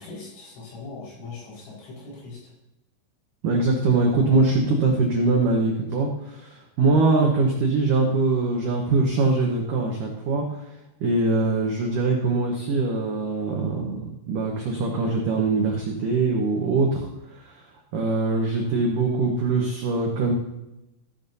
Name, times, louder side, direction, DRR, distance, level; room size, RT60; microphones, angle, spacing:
voice 1, 0.0-2.5, left 3 dB, 75° left, -5 dB, 7.4 m, -40 dB
voice 2, 3.4-10.6 11.0-17.6 17.9-20.3, right 3 dB, 85° right, 0 dB, 1.8 m, -23 dB
15.5 x 10.5 x 2.8 m, 0.93 s
omnidirectional pair, 5.7 m